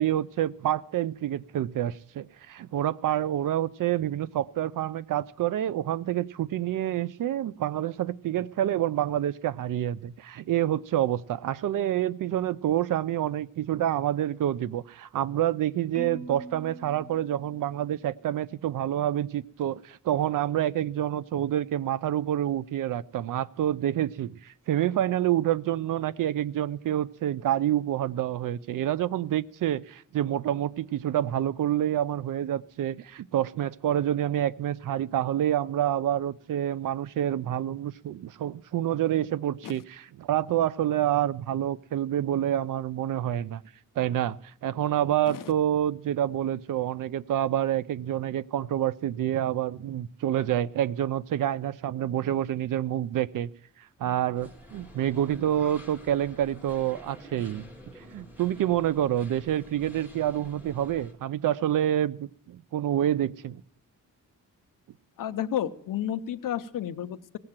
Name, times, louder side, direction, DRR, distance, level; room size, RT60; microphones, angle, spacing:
voice 1, 0.0-43.6 44.0-53.5 54.0-57.6 58.1-63.6, right 11 dB, 80° right, 18 dB, 0.5 m, -28 dB
Marimba xylophone, 15.9-18.1, right 2 dB, 20° right, 1.7 m, -43 dB
sound 1, 54.3-61.1, left 1 dB, 5° right, 1.9 m, -49 dB
voice 2, 65.2-67.4, left 10 dB, 80° left, 11 dB, 0.8 m, -31 dB
17.5 x 7.7 x 7.3 m, 0.64 s
wide cardioid pair, 170°, 32 cm